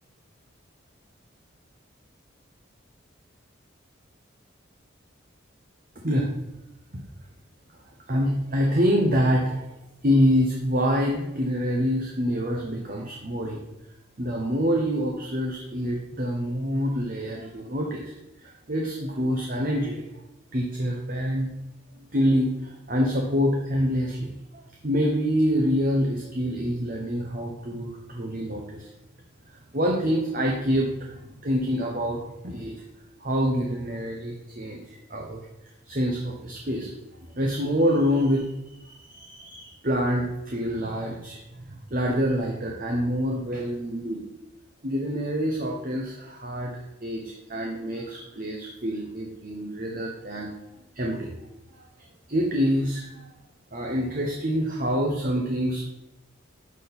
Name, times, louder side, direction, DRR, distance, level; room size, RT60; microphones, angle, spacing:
voice 1, 8.1-9.7 10.0-13.6 14.2-18.1 18.4-20.1 20.5-21.5 22.1-28.9 29.7-32.2 32.4-32.7 33.2-35.4 35.9-36.9 37.3-38.5 38.8-44.2 44.8-50.5 50.9-51.3 52.3-53.3 53.7-55.8, equal, 45° right, -1 dB, 1.1 m, -26 dB
12.0 x 4.4 x 4.3 m, 0.92 s
head